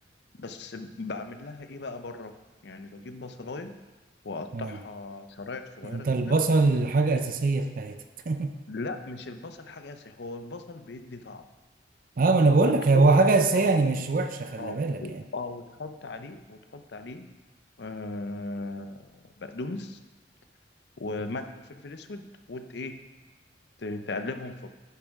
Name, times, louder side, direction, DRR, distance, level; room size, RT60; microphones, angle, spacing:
voice 1, 0.4-2.3 2.6-3.7 4.2-6.4 8.7-11.4 12.6-13.0 13.5-13.7 14.6-17.2 17.8-19.0 19.4-20.0 21.0-23.0 23.8-24.7, left 3 dB, 60° left, 8 dB, 0.6 m, -37 dB
voice 2, 5.8-8.0 8.3-8.6 12.2-15.2, right 3 dB, 50° right, 7 dB, 0.5 m, -23 dB
10.5 x 6.9 x 3.6 m, 1.2 s
head